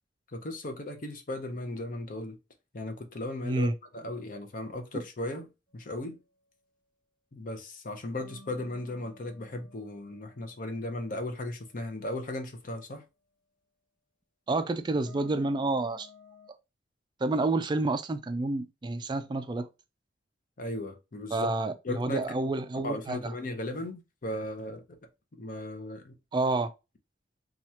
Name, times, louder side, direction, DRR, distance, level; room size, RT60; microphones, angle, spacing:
voice 1, 0.3-2.4 2.7-3.7 3.9-5.5 5.7-6.2 7.3-13.0 20.6-21.5 21.8-22.2 22.8-24.8 25.4-26.2, left 1 dB, 50° left, 0.7 m, -36 dB
voice 2, 3.4-3.7 14.5-16.1 17.2-19.7 21.3-23.3 26.3-26.7, right 2 dB, 25° right, 0.3 m, -29 dB
sound 1, 8.2-12.3 15.1-16.5, left 3 dB, 10° left, 0.9 m, -56 dB
2.9 x 2.4 x 4.2 m
head